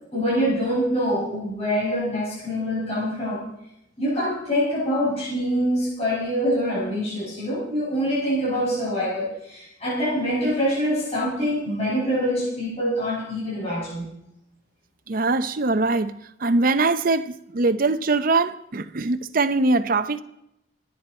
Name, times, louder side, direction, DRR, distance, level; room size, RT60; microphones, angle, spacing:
voice 1, 0.1-3.4 4.0-14.1, equal, 35° left, 7.0 m, -25 dB
voice 2, 15.1-20.2, right 3 dB, 50° right, 0.7 m, -22 dB
26.0 x 9.3 x 4.3 m
head